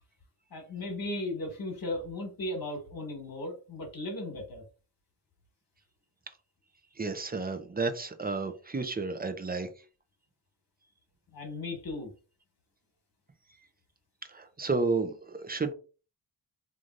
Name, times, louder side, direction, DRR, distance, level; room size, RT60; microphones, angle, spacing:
voice 1, 0.5-4.6 11.3-12.1, left 1 dB, 50° left, 1.4 m, -36 dB
voice 2, 7.0-9.7 14.3-15.7, right 3 dB, 20° right, 0.5 m, -31 dB
3.1 x 2.5 x 2.5 m
cardioid pair, 55°, 47 cm